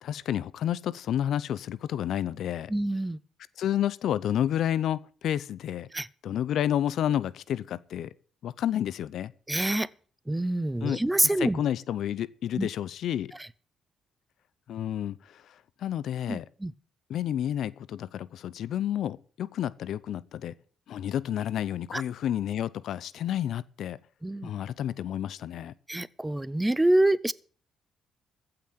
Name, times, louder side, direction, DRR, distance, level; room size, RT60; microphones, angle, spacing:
voice 1, 0.0-2.7 3.6-5.9 6.2-8.1 8.4-9.3 10.8-11.0 11.4-13.3 14.7-16.5 17.1-20.5 20.9-24.0 24.4-25.7, left 10 dB, 75° left, 0.6 m, -30 dB
voice 2, 2.7-3.2 5.9-6.1 9.5-9.9 10.3-11.6 12.6-12.7 13.4-13.5 16.3-16.7 21.9-22.0 24.2-24.5 25.9-27.3, right 1 dB, 10° right, 0.6 m, -26 dB
15.0 x 6.0 x 9.1 m
cardioid pair, 90°, 0 cm